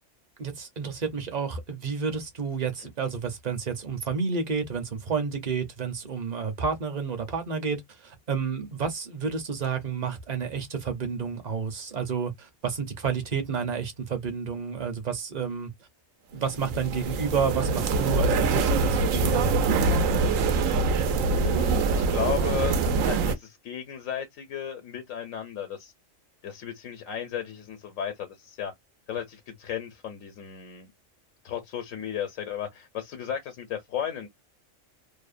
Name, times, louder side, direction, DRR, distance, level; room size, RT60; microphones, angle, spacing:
voice 1, 0.4-15.7 16.3-19.7, right 6 dB, 45° right, 0.6 m, -30 dB
sound 1, 16.5-23.3, right 3 dB, 90° right, 1.0 m, -24 dB
voice 2, 21.3-25.9 26.4-28.7 29.1-30.9 31.4-34.3, left 9 dB, 85° left, 1.0 m, -34 dB
2.7 x 2.1 x 2.4 m
omnidirectional pair, 1.3 m